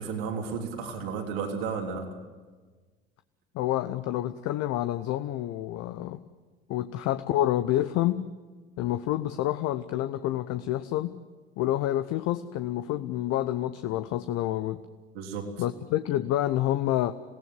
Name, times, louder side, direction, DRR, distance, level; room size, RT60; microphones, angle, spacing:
voice 1, 0.0-2.1 15.1-15.6, right 5 dB, 70° right, 2 dB, 3.6 m, -33 dB
voice 2, 3.5-6.2 6.7-8.3 8.8-11.2 11.6-14.8 15.6-17.1, left 13 dB, 55° left, 11 dB, 0.9 m, -28 dB
27.0 x 18.0 x 7.7 m, 1.4 s
hypercardioid pair, 65°, 31 cm